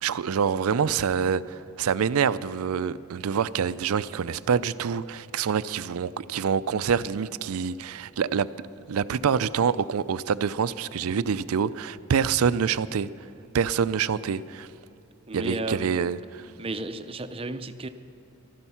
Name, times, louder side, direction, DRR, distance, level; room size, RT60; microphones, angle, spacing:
voice 1, 0.0-8.5 8.9-13.1 13.5-14.7 15.3-16.2, right 7 dB, 90° right, 0.4 m, -26 dB
voice 2, 15.3-16.0 16.6-17.9, right 2 dB, 25° right, 0.6 m, -33 dB
15.5 x 12.5 x 5.7 m
head